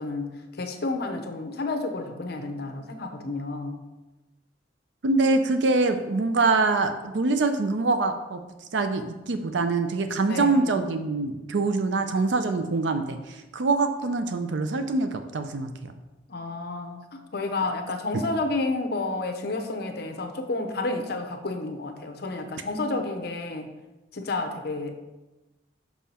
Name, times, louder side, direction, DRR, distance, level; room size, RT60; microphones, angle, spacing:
voice 1, 0.0-3.8 10.2-10.7 16.3-17.0 17.3-23.7 24.1-25.0, left 2 dB, 60° left, 6 dB, 0.7 m, -30 dB
voice 2, 5.0-8.4 8.7-15.9 18.1-18.2, right 3 dB, 80° right, 8 dB, 0.5 m, -24 dB
6.1 x 5.6 x 4.2 m, 1.1 s
head